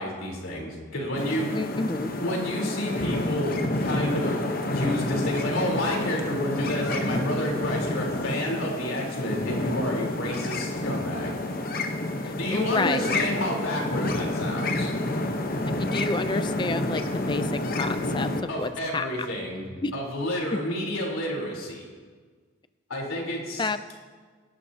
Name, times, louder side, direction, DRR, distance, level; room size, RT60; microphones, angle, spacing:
voice 1, 0.0-1.5 2.2-11.3 12.4-14.9 18.5-21.8 22.9-23.7, left 1 dB, 85° left, -2 dB, 3.7 m, -30 dB
sound 1, 1.2-18.4, left 1 dB, 45° left, 1.0 m, -29 dB
voice 2, 1.5-2.1 12.2-13.2 15.8-18.3 18.6-19.1 19.8-19.9 23.6-23.8, left 3 dB, 20° left, 11 dB, 0.4 m, -29 dB
24.5 x 11.5 x 2.8 m, 1.6 s
head